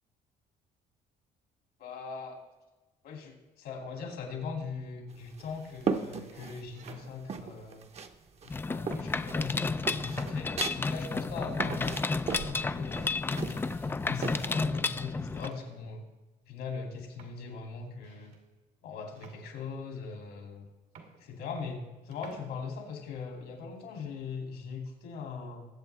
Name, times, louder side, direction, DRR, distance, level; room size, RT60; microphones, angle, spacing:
voice 1, 1.8-2.4 3.0-7.9 8.4-16.1 16.5-18.4 18.8-20.7 21.2-25.7, left 5 dB, 75° left, 2 dB, 2.6 m, -40 dB
sound 1, 4.0-4.5 5.3-5.9 6.7-7.7 8.4-8.5 8.9-9.4 9.9-10.0 10.6-10.8 11.7-12.3 13.4-13.9 14.3-14.6 15.4-16.0 16.8-16.9 17.2-18.4 19.1-20.0 20.6-20.7 20.9-21.9 22.1-22.5, right 5 dB, 80° right, 2.2 m, -54 dB
sound 2, 5.1-7.0 7.3-8.2 8.4-14.5, right 5 dB, 40° right, 0.8 m, -37 dB
Mechanisms, 8.5-15.5, left 3 dB, 15° left, 0.3 m, -32 dB
21.0 x 7.6 x 3.3 m, 1.1 s
cardioid pair, 110°, 17 cm